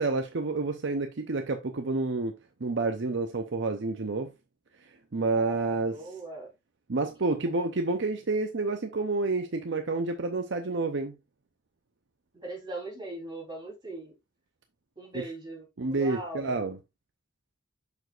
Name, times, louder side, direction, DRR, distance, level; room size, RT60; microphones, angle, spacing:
voice 1, 0.0-2.3 2.6-4.3 5.1-6.1 6.9-11.1 15.1-15.3 15.8-16.8, right 3 dB, 60° right, 0.7 m, -29 dB
voice 2, 5.3-6.5 12.3-14.1 15.0-16.6, right 2 dB, 25° right, 3.6 m, -40 dB
7.0 x 6.1 x 2.5 m
head